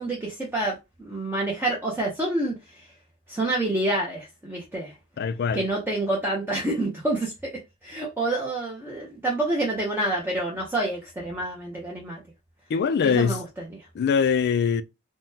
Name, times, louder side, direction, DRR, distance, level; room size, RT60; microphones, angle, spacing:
voice 1, 0.0-2.9 3.3-4.9 5.5-12.2 13.0-13.9, right 2 dB, 10° right, 0.6 m, -28 dB
voice 2, 5.2-5.6 12.7-13.4 13.9-14.8, left 6 dB, 50° left, 0.3 m, -22 dB
3.6 x 2.1 x 2.7 m
head